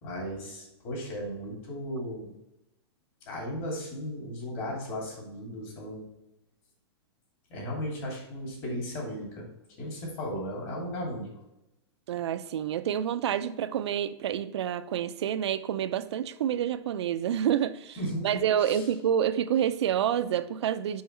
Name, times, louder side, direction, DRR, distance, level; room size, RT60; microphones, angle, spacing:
voice 1, 0.0-2.3 3.3-6.1 7.5-9.4 9.8-11.3 18.0-18.8, equal, 35° left, 2.6 m, -36 dB
voice 2, 12.1-18.0 18.2-21.0, right 9 dB, 75° right, 0.5 m, -28 dB
5.6 x 5.1 x 4.4 m
supercardioid pair, 165°, 14 cm